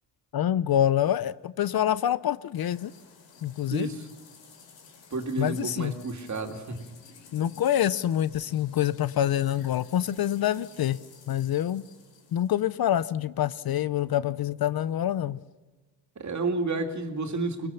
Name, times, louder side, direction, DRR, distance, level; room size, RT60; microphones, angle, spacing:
voice 1, 0.3-2.9 3.4-4.0 5.4-5.9 7.3-11.0 11.3-11.8 12.3-15.4, left 11 dB, 55° left, 16 dB, 0.7 m, -26 dB
sound 1, 2.5-12.5, left 5 dB, 75° left, 4.6 m, -53 dB
voice 2, 3.7-4.1 5.1-6.9 16.2-17.7, right 3 dB, 40° right, 6 dB, 2.9 m, -31 dB
23.0 x 20.5 x 7.1 m, 1.2 s
cardioid pair, 75°, 44 cm